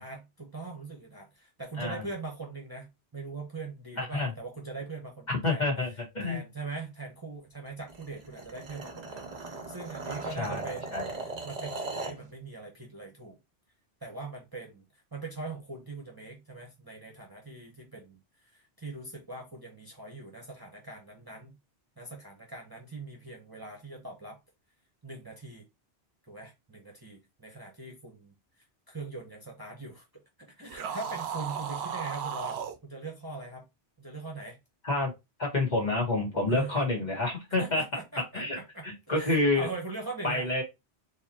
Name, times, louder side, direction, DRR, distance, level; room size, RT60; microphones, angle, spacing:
voice 1, 0.0-5.6 6.2-11.0 11.4-13.4 14.0-14.8 15.1-18.2 18.5-21.6 22.0-24.4 25.0-25.7 26.3-28.3 28.9-30.0 30.4-33.6 34.0-34.6 36.5-36.8 37.6-38.8 39.2-40.5, right 3 dB, 20° right, 1.0 m, -41 dB
voice 2, 4.0-4.3 5.3-6.4 10.3-11.1 34.8-35.1 35.4-37.8 38.3-39.7 40.2-40.6, left 2 dB, 40° left, 1.8 m, -28 dB
sound 1, 7.9-12.2, right 3 dB, 45° right, 0.8 m, -38 dB
sound 2, 30.7-32.8, right 7 dB, 75° right, 0.8 m, -35 dB
4.6 x 3.1 x 2.8 m
omnidirectional pair, 1.1 m